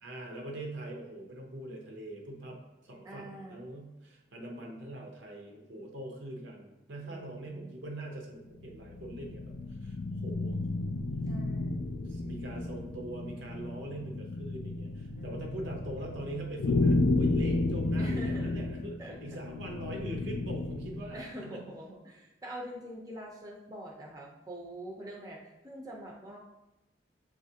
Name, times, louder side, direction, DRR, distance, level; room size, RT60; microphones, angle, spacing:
voice 1, 0.0-10.6 12.1-21.6, right 1 dB, 75° right, 0 dB, 0.8 m, -43 dB
voice 2, 3.0-3.6 7.0-7.8 11.2-11.9 15.1-15.9 18.0-18.6 19.0-19.2 21.1-26.4, equal, 20° right, -2 dB, 0.5 m, -45 dB
sound 1, 8.5-21.2, left 2 dB, 60° left, 0.3 m, -32 dB
7.2 x 2.4 x 2.7 m, 0.95 s
head